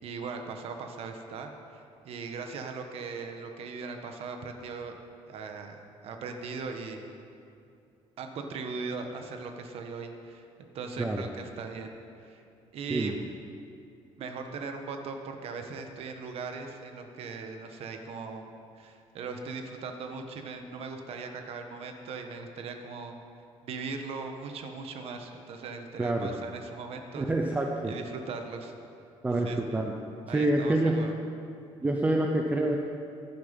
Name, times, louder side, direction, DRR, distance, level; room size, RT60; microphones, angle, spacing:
voice 1, 0.0-5.0 5.3-5.8 6.0-7.1 8.2-11.9 12.2-12.4 12.7-13.1 14.2-18.5 18.7-23.2 23.6-27.3 27.8-28.7 29.4-29.8 30.3-31.1, right 4 dB, 60° right, 5 dB, 1.4 m, -39 dB
voice 2, 26.0-26.4 27.1-27.9 29.2-29.9 30.3-31.0 31.8-32.8, right 2 dB, 15° right, 1 dB, 0.7 m, -27 dB
16.0 x 10.5 x 5.4 m, 2.5 s
cardioid pair, 150°, 12 cm